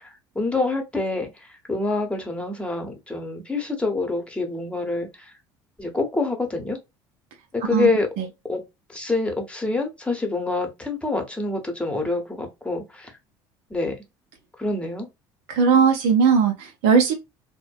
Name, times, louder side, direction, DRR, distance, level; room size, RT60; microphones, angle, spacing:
voice 1, 0.0-5.3 5.8-6.8 7.5-8.1 8.5-8.6 8.9-13.1 13.7-13.9 14.6-15.1, left 3 dB, 10° left, 0.9 m, -26 dB
voice 2, 15.5-17.1, right 6 dB, 70° right, 0.6 m, -18 dB
2.5 x 2.2 x 2.2 m
supercardioid pair, 80°, 10 cm